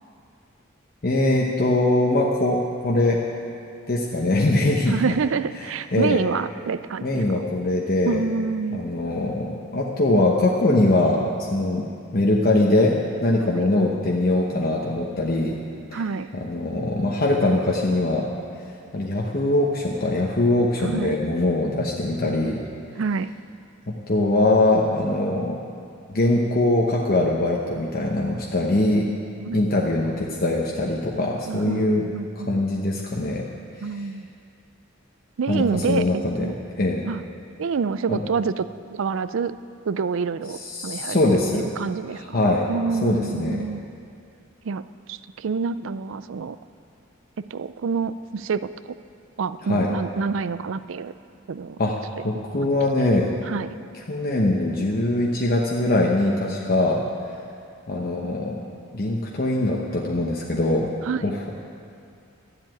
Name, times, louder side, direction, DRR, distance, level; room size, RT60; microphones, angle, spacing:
voice 1, 1.0-3.2 3.9-5.1 5.9-6.2 7.0-8.2 8.7-11.9 12.1-15.6 15.9-16.0 16.3-18.3 18.9-22.6 23.9-25.6 26.1-29.1 29.5-32.1 32.5-33.4 33.8-33.9 35.5-37.0 38.1-38.2 40.6-41.7 42.1-42.7 43.0-43.6 49.7-49.9 51.8-52.0 52.2-53.3 54.1-57.0 57.9-58.6 58.9-60.9 61.2-61.5, left 2 dB, 45° left, -2 dB, 1.0 m, -22 dB
voice 2, 4.9-7.4 8.0-8.8 15.9-16.3 20.8-21.2 23.0-23.3 29.4-29.6 31.5-32.5 33.8-34.3 35.4-36.6 37.0-37.2 37.6-39.5 39.8-41.2 41.5-42.4 42.7-43.8 44.6-46.6 47.5-48.7 49.4-51.1 51.5-51.8 52.6-52.7 53.4-53.7 61.0-61.2, right 5 dB, 65° right, 14 dB, 0.4 m, -27 dB
13.0 x 7.7 x 9.1 m, 2.5 s
head